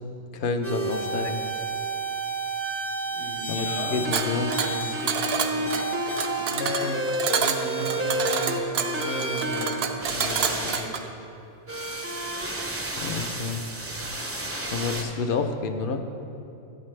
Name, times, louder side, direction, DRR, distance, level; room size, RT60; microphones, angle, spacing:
voice 1, 0.3-1.4 3.5-4.5 13.0-13.6 14.7-16.0, left 4 dB, 60° left, 6 dB, 0.7 m, -28 dB
sound 1, 0.6-9.7 10.0-10.8 11.7-15.0, right 1 dB, 15° right, 0.5 m, -30 dB
voice 2, 3.1-4.0 4.6-5.7 6.3-7.0 7.3-11.0, equal, 80° left, -2 dB, 1.7 m, -35 dB
sound 2, 4.1-11.1, right 7 dB, 65° right, 0.8 m, -28 dB
12.5 x 8.2 x 3.2 m, 2.7 s
omnidirectional pair, 1.1 m